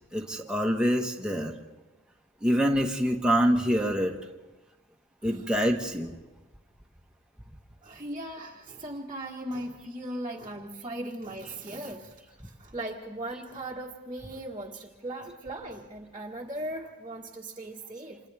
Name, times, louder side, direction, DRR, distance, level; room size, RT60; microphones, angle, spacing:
voice 1, 0.1-1.5 2.4-4.1 5.2-6.2, equal, 5° right, 0 dB, 1.4 m, -25 dB
voice 2, 7.8-18.2, right 1 dB, 20° right, -3 dB, 1.5 m, -38 dB
30.0 x 27.5 x 3.5 m, 1.1 s
head